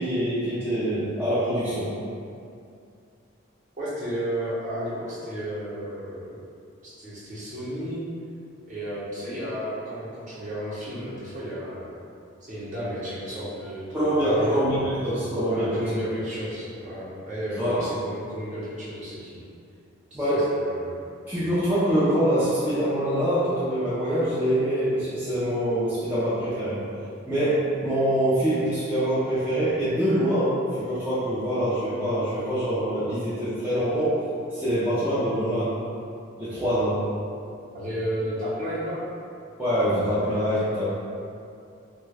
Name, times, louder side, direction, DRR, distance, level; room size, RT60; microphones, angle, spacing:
voice 1, 0.0-1.9 13.9-15.8 17.6-17.9 20.1-20.5 21.3-26.8 27.2-34.2 34.5-35.8 36.4-37.0 39.6-40.9, equal, 10° right, -13 dB, 0.5 m, -24 dB
voice 2, 3.8-6.4 6.8-8.1 8.7-11.9 12.4-14.8 15.5-19.5 20.1-21.0 37.7-39.0, equal, 35° right, -9 dB, 0.8 m, -33 dB
3.1 x 2.2 x 3.3 m, 2.5 s
head